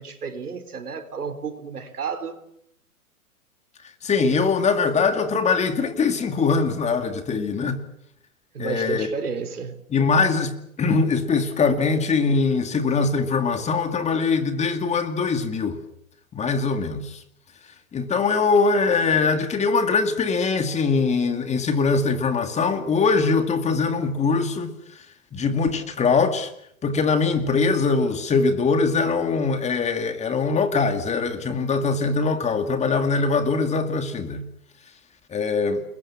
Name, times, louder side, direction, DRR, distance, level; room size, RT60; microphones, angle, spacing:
voice 1, 0.0-2.4 8.5-9.8, right 5 dB, 85° right, 4.3 m, -31 dB
voice 2, 4.0-7.8 8.6-9.1 9.9-10.5 10.8-15.8 16.3-17.2 17.9-24.7 25.3-26.5 26.8-34.4 35.3-35.8, left 4 dB, 15° left, 2.4 m, -22 dB
29.0 x 22.0 x 7.4 m
hypercardioid pair, 130°, 44 cm